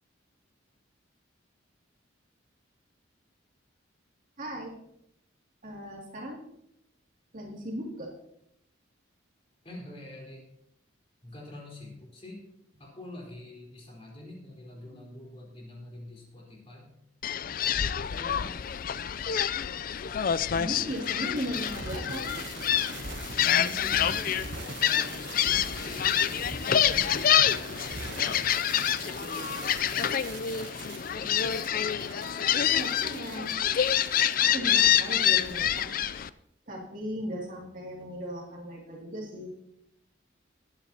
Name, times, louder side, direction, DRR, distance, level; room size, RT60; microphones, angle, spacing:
voice 1, 4.4-4.7 5.6-6.4 7.3-8.1 20.5-22.2 32.7-33.5 34.4-35.9 36.7-39.5, equal, 45° right, -2 dB, 2.5 m, -37 dB
voice 2, 9.6-10.4 11.2-12.4 12.8-16.9 17.9-18.5 23.3-24.3 24.8-28.6 29.0-30.8, left 1 dB, 30° left, -2 dB, 4.1 m, -46 dB
Gull seagull, 17.2-36.3, left 9 dB, 45° left, 0.4 m, -27 dB
sound 1, 20.6-35.8, right 4 dB, 70° right, 1.1 m, -42 dB
20.5 x 9.8 x 2.9 m, 0.78 s
head